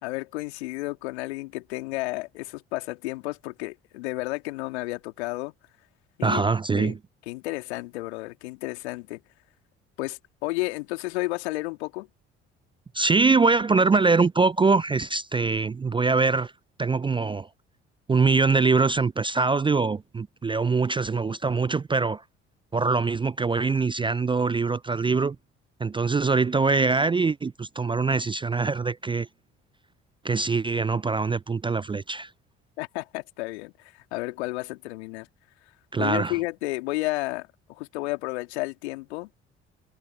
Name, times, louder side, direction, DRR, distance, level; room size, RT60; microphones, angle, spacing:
voice 1, 0.0-5.5 6.2-6.5 6.7-6.9 7.3-9.2 10.0-12.1 32.8-35.3 36.0-39.3, left 21 dB, 75° left, 3.1 m, -32 dB
voice 2, 6.2-7.0 12.9-16.5 16.8-17.5 18.1-22.2 22.7-25.4 25.8-29.3 30.2-32.3 35.9-36.3, right 4 dB, 15° right, 0.4 m, -23 dB
hypercardioid pair, 50°, 33 cm